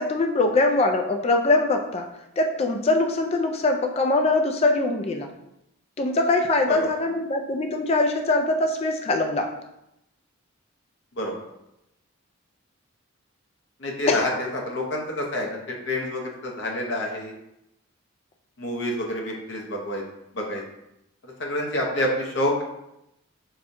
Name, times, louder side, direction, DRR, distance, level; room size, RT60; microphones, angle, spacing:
voice 1, 0.0-2.1 2.4-5.3 6.0-9.5 14.1-14.3, left 2 dB, 30° left, 3 dB, 0.3 m, -22 dB
voice 2, 13.8-17.3 18.6-20.0 20.3-20.6 21.2-22.6, left 1 dB, 55° left, -1 dB, 0.8 m, -28 dB
5.6 x 2.3 x 2.6 m, 0.85 s
head